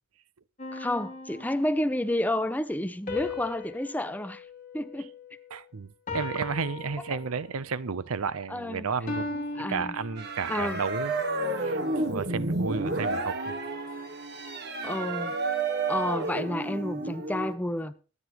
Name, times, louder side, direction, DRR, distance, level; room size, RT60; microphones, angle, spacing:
sound 1, 0.6-2.0 3.1-5.5 6.1-7.7 9.1-10.7, left 3 dB, 35° left, 2.6 m, -38 dB
voice 1, 0.7-4.4 4.7-5.1 8.5-8.9 9.3-9.9 10.5-10.8 14.8-15.3 15.9-17.9, left 1 dB, 5° left, 0.5 m, -30 dB
voice 2, 5.5-9.4 9.7-11.8 12.1-13.6, right 5 dB, 80° right, 0.6 m, -32 dB
sound 2, 10.2-17.5, right 2 dB, 50° right, 1.6 m, -31 dB
23.0 x 9.8 x 3.0 m
head